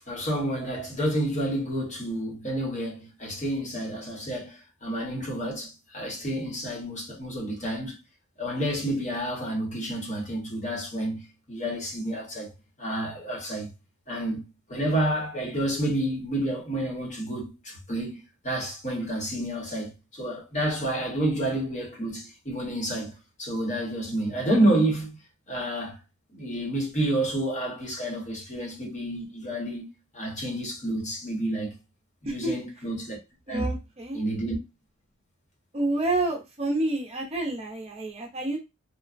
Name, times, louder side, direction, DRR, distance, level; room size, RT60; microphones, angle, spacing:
voice 1, 0.1-7.9 8.4-12.5 12.8-13.7 14.1-25.2 25.5-26.0 26.3-31.8 32.2-33.2 33.5-33.7 34.1-34.6, right 1 dB, 35° left, 1.0 m, -29 dB
voice 2, 33.5-34.2 35.7-38.6, right 2 dB, 30° right, 0.6 m, -28 dB
3.1 x 2.0 x 2.4 m
head